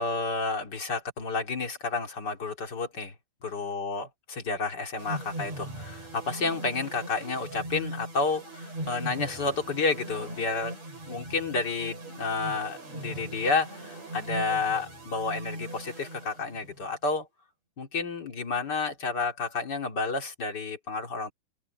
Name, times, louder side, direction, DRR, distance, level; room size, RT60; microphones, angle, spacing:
voice 1, 0.0-3.1 3.4-10.7 11.0-17.3 17.8-21.3, left 4 dB, 40° left, 1.4 m, -30 dB
sound 1, 5.0-16.8, right 1 dB, 35° right, 9.1 m, -40 dB
open air
omnidirectional pair, 5.6 m